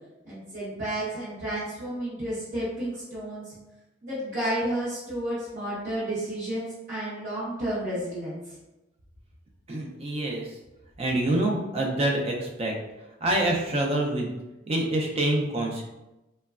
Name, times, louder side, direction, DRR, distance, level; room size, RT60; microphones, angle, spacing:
voice 1, 0.2-3.6 4.0-8.6, right 1 dB, 45° right, -12 dB, 0.8 m, -31 dB
voice 2, 9.7-10.4 11.0-12.7 13.2-14.3 14.7-15.8, right 1 dB, 30° right, 0 dB, 0.4 m, -26 dB
3.0 x 2.2 x 2.3 m, 1.0 s
head